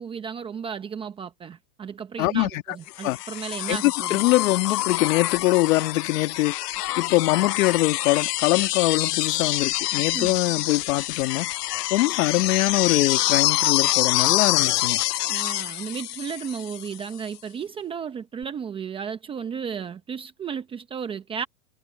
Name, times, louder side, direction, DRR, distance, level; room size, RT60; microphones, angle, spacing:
voice 1, 0.0-4.2 10.1-10.5 15.3-21.5, right 7 dB, 10° right, 0.8 m, -34 dB
voice 2, 2.2-2.6 3.0-3.2 3.7-6.5 7.0-11.5 11.9-15.0, left 17 dB, 55° left, 2.2 m, -23 dB
sound 1, 3.0-17.0 18.4-18.5, left 16 dB, 80° left, 0.7 m, -26 dB
supercardioid pair, 155°, 47 cm